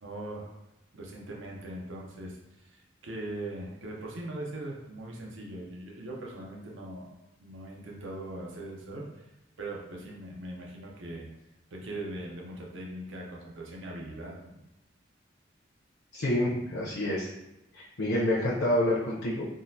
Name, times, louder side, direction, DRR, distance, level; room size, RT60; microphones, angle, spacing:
voice 1, 0.0-0.5 0.9-7.1 7.4-9.3 9.6-11.3 11.7-14.6, right 1 dB, 85° right, -1 dB, 0.7 m, -40 dB
voice 2, 16.1-17.3 17.7-19.4, left 1 dB, 90° left, -5 dB, 0.6 m, -28 dB
3.7 x 2.4 x 2.7 m, 0.94 s
head